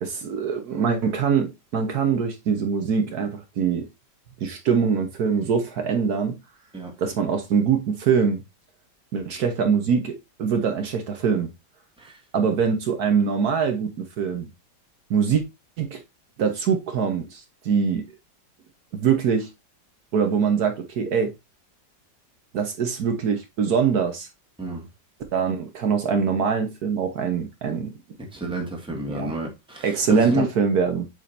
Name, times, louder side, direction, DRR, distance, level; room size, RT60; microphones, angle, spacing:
voice 1, 0.0-3.9 4.4-6.4 7.0-8.4 9.1-11.5 12.3-14.5 15.1-15.4 15.8-16.0 16.4-18.0 18.9-19.5 20.1-21.3 22.5-24.3 25.3-27.9 29.1-29.4 29.8-31.1, right 6 dB, 65° right, 1.4 m, -23 dB
voice 2, 28.3-30.5, right 1 dB, 5° right, 1.6 m, -29 dB
7.7 x 5.1 x 2.6 m
omnidirectional pair, 1.8 m